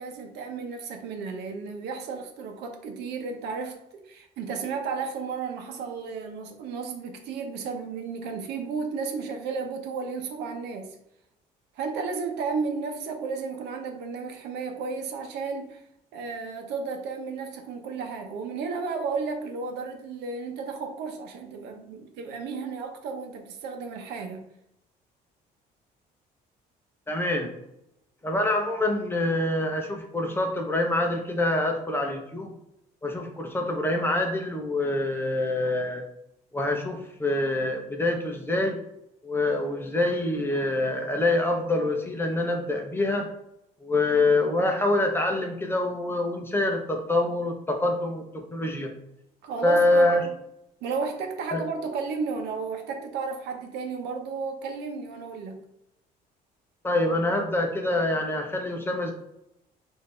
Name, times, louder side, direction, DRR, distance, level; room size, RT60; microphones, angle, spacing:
voice 1, 0.0-11.0 11.7-15.8 16.1-24.4 49.4-50.3 50.8-55.6, right 5 dB, 80° right, 4 dB, 0.8 m, -33 dB
voice 2, 27.1-27.5 28.2-32.5 33.0-36.0 36.5-38.8 39.2-43.3 43.8-48.9 49.6-50.2 51.5-51.6 56.8-59.1, left 2 dB, 15° left, 2 dB, 0.8 m, -25 dB
4.8 x 2.7 x 3.4 m, 0.83 s
cardioid pair, 110°, 17 cm